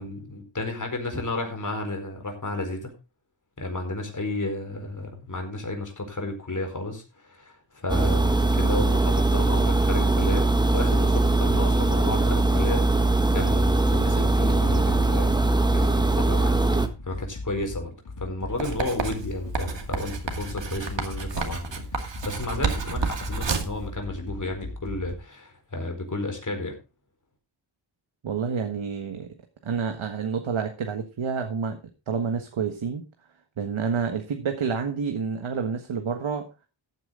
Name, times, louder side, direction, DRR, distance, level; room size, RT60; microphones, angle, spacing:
voice 1, 0.0-2.9 3.6-15.3 15.7-26.7, left 2 dB, 40° left, 4 dB, 4.5 m, -32 dB
sound 1, 7.9-16.9, right 2 dB, 10° right, 1.5 m, -21 dB
sound 2, 14.7-25.1, left 2 dB, 60° left, 2.3 m, -38 dB
Writing, 18.6-23.8, right 5 dB, 65° right, 2.4 m, -30 dB
voice 2, 28.2-29.3 29.6-31.8 32.1-33.0 33.6-36.5, right 6 dB, 85° right, 5 dB, 1.6 m, -28 dB
15.0 x 9.2 x 3.8 m, 0.28 s
wide cardioid pair, 95°, 47 cm